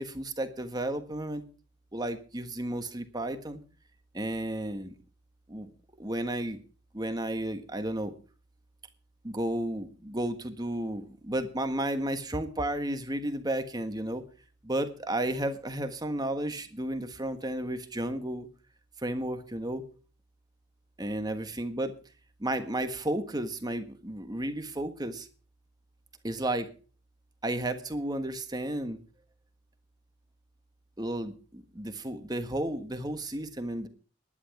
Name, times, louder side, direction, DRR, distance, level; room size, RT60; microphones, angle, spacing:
voice 1, 0.0-1.4 1.9-3.6 4.1-4.9 5.5-5.7 6.0-6.6 6.9-8.1 9.2-14.3 14.6-18.5 19.0-19.9 21.0-21.9 22.4-25.3 26.2-26.7 27.4-29.0 31.0-33.9, right 1 dB, 20° right, 8 dB, 1.4 m, -33 dB
11.0 x 11.0 x 6.0 m, 0.38 s
head